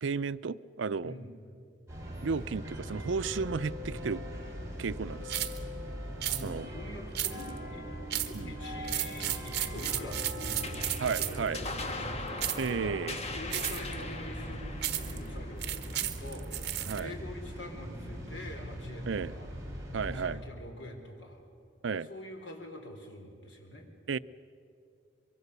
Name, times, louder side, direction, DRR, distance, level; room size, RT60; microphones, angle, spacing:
voice 1, 0.0-1.2 2.2-4.2 4.8-5.5 6.4-6.7 8.3-8.5 11.0-11.6 12.6-13.2 16.9-17.1 19.1-19.3 19.9-20.4 21.8-22.1 24.1-24.2, right 5 dB, 85° right, 0.5 m, -33 dB
sound 1, 1.9-20.3, equal, 15° right, 4.2 m, -41 dB
sound 2, 5.3-5.6 6.2-6.4 7.1-7.6 8.1-8.4 8.8-11.5 12.4-12.7 13.5-13.9 14.8-15.2 15.6-17.0, right 13 dB, 60° right, 1.2 m, -33 dB
voice 2, 6.2-13.0 13.3-14.6 14.9-19.6 20.0-21.4 22.0-23.9, left 1 dB, 75° left, 4.0 m, -45 dB
sound 3, 10.6-17.4, left 3 dB, 35° left, 1.4 m, -41 dB
24.5 x 23.0 x 6.7 m
head